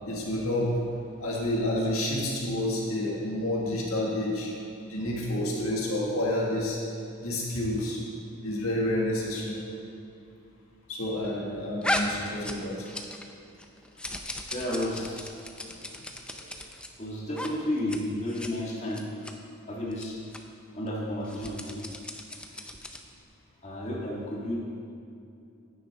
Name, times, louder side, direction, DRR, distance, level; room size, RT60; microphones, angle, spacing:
voice 1, 0.1-4.5 4.8-6.8 7.2-8.0 8.4-9.6 10.9-12.9 14.7-15.0 15.7-15.8 16.4-16.5 17.4-17.5, left 1 dB, 85° left, -3 dB, 1.7 m, -29 dB
sound 1, 11.8-13.3 13.6-16.9 17.3-17.5 17.8-18.0 18.3-18.5 18.9-19.3 19.9-20.1 20.3-20.4 21.2-23.1, left 1 dB, 5° left, 0.4 m, -35 dB
voice 2, 14.5-15.3 17.0-19.1 19.7-20.2 20.7-21.8 22.5-22.6 23.6-24.6, left 1 dB, 30° left, -5 dB, 1.6 m, -32 dB
9.7 x 9.6 x 3.5 m, 2.6 s
head